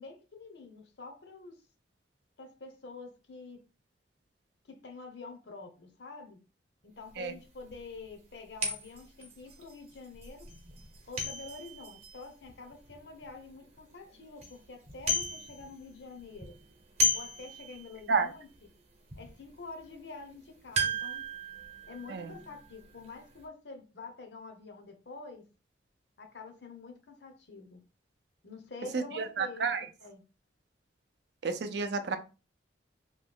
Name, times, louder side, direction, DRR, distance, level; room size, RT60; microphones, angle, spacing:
voice 1, 0.0-1.6 2.4-3.6 4.7-6.4 6.8-10.5 11.1-16.6 17.1-18.5 19.2-21.2 21.9-25.4 26.2-27.8 28.4-29.6 30.0-30.2, left 3 dB, 65° left, 0.8 m, -47 dB
sound 1, 7.1-7.2 7.7-7.8 8.6-13.3 13.8-13.9 14.2-14.5 14.8-15.9 16.2-18.2 18.5-18.6 19.1-19.3 20.7-23.2 23.4-23.5, left 1 dB, 35° right, 0.8 m, -35 dB
voice 2, 28.9-29.9 31.4-32.2, right 4 dB, 65° right, 0.5 m, -31 dB
3.0 x 2.3 x 3.4 m
head